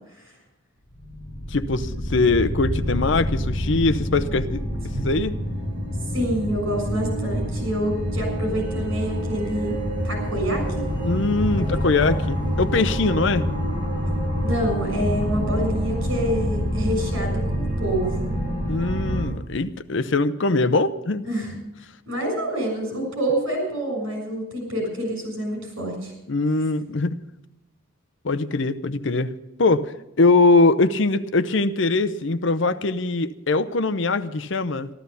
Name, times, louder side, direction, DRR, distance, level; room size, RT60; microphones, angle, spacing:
sound 1, 0.9-19.3, equal, 25° left, 7.8 m, -27 dB
voice 1, 1.5-4.6 5.0-5.3 11.0-13.5 18.7-21.2 26.3-27.2 28.2-29.3 29.6-34.9, left 3 dB, 60° left, 0.7 m, -22 dB
voice 2, 6.1-9.7 10.0-10.9 11.5-11.7 12.0-12.1 14.4-18.3 21.3-21.5 22.1-26.1, right 1 dB, 75° right, 6.8 m, -27 dB
14.0 x 13.0 x 6.8 m
head